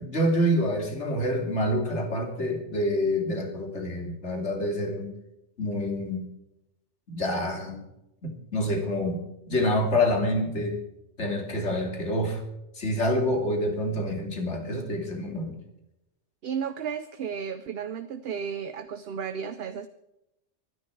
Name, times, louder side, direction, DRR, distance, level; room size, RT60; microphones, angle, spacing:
voice 1, 0.0-5.1 5.6-6.3 7.1-7.8 8.2-9.2 9.5-10.8 11.2-12.4 12.7-15.6, left 1 dB, 70° left, 3 dB, 3.2 m, -27 dB
voice 2, 16.4-19.9, right 7 dB, 60° right, 11 dB, 0.9 m, -33 dB
23.5 x 10.5 x 4.7 m, 0.86 s
omnidirectional pair, 1.2 m